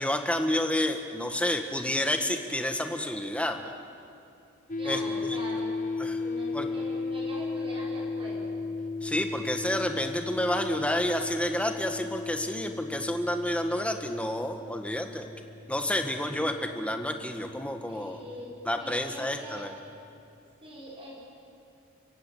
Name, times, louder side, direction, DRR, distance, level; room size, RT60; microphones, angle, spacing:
voice 1, 0.0-3.6 4.8-5.4 6.0-6.2 6.5-6.7 9.0-15.3 15.7-18.2 18.6-19.8, left 1 dB, 5° left, 5 dB, 1.6 m, -29 dB
sound 1, 4.7-19.9, left 3 dB, 40° left, 1.0 m, -36 dB
voice 2, 4.8-5.8 6.2-8.6 17.9-19.8 20.6-21.2, equal, 25° right, -4 dB, 5.3 m, -42 dB
30.0 x 16.0 x 8.8 m, 2.5 s
head